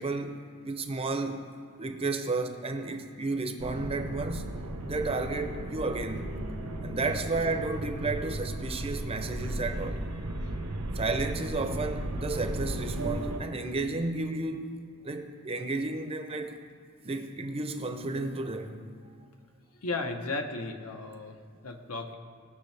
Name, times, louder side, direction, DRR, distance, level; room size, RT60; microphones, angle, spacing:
voice 1, 0.0-1.5 1.8-6.4 6.8-10.1 10.9-14.6 15.0-16.6 17.0-19.2, right 3 dB, 25° right, 0.6 m, -32 dB
sound 1, 3.6-13.4, right 1 dB, 85° right, 1.0 m, -35 dB
voice 2, 19.7-22.1, left 3 dB, 75° left, 1.0 m, -35 dB
19.5 x 6.6 x 3.4 m
head